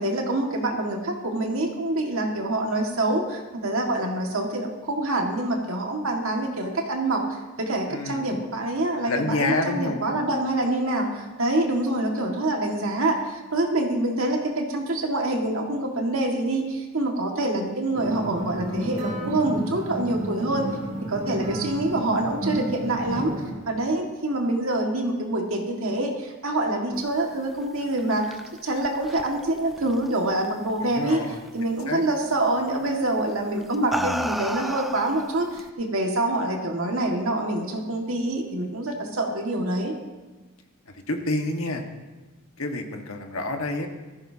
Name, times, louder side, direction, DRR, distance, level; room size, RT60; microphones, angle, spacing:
voice 1, 0.0-20.7 21.1-23.3 23.7-31.2 31.5-39.9, right 1 dB, 70° right, 1 dB, 2.0 m, -26 dB
voice 2, 7.9-8.4 9.1-10.0 30.8-31.4 31.9-32.0 40.9-41.8 42.6-43.9, left 2 dB, 70° left, 3 dB, 1.5 m, -28 dB
sound 1, 17.9-23.5, right 1 dB, 40° right, 3.7 m, -32 dB
sound 2, 27.8-30.7 31.1-31.5 32.7-32.9 33.6-35.7, equal, ahead, 0.3 m, -33 dB
18.0 x 14.5 x 2.9 m, 1.2 s
head